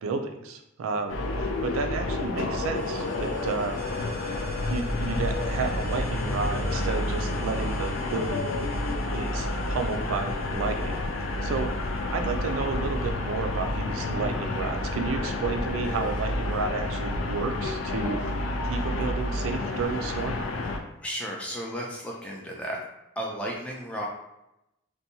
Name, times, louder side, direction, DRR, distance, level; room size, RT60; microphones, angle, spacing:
voice 1, 0.0-4.1 4.7-8.5 9.1-11.0 11.4-11.7 12.1-18.2 18.7-20.4, right 4 dB, 90° right, 6 dB, 0.3 m, -31 dB
sound 1, 1.1-20.8, left 2 dB, 80° left, 0.4 m, -29 dB
sound 2, 2.7-14.1, left 2 dB, 50° left, 0.8 m, -43 dB
voice 2, 21.0-22.8 23.2-24.1, equal, 5° left, -3 dB, 0.3 m, -33 dB
2.6 x 2.1 x 2.7 m, 0.88 s
head